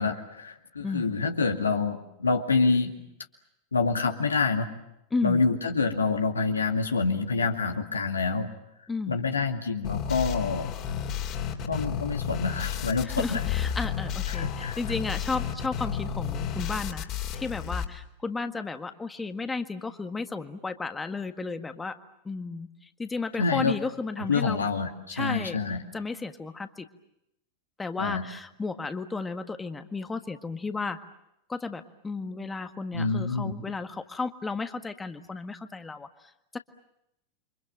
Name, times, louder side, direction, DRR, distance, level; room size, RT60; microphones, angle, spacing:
voice 1, 0.0-2.9 3.7-4.7 5.2-8.5 9.1-10.7 11.7-13.4 14.3-14.8 23.4-23.8 24.3-25.8 28.0-28.2 32.9-33.5, left 4 dB, 85° left, 4 dB, 2.3 m, -27 dB
voice 2, 0.8-1.1 5.1-5.4 8.9-9.2 13.0-22.0 22.2-24.7 25.1-25.6 25.9-26.9 27.8-31.0 31.5-36.6, left 4 dB, 15° left, 8 dB, 1.6 m, -33 dB
sound 1, 9.8-17.8, left 8 dB, 45° left, 3.5 m, -32 dB
29.5 x 25.0 x 7.5 m, 0.81 s
figure-of-eight pair, 90°, 0 cm